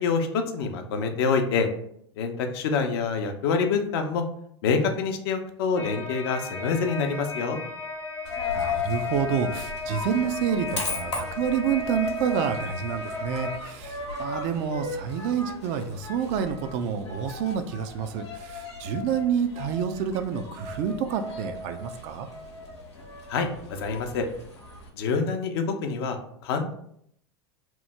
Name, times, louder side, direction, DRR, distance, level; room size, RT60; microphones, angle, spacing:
voice 1, 0.0-1.7 2.2-4.2 4.6-7.6 23.3-24.2 25.0-26.2 26.4-26.8, left 5 dB, 65° left, 5 dB, 0.5 m, -26 dB
sound 1, 5.8-13.6, left 3 dB, 15° left, 0.5 m, -36 dB
Coin (dropping), 8.2-24.9, left 3 dB, 90° left, 0.8 m, -36 dB
voice 2, 8.6-22.3, right 7 dB, 50° right, 8 dB, 0.4 m, -28 dB
2.9 x 2.0 x 3.3 m, 0.70 s
hypercardioid pair, 90°, 14 cm